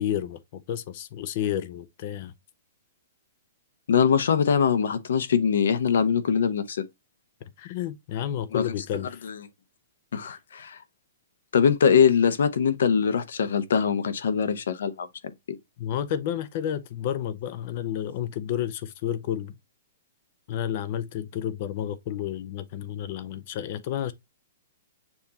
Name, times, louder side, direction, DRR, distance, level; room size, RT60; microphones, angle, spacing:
voice 1, 0.0-2.3 7.4-9.3 10.2-10.4 15.8-19.6 20.5-24.1, left 10 dB, 40° left, 0.6 m, -31 dB
voice 2, 3.9-6.8 8.5-8.6 9.2-9.4 10.1-10.8 11.5-15.1, left 7 dB, 80° left, 0.8 m, -22 dB
7.0 x 2.6 x 2.7 m
hypercardioid pair, 160°, 0 cm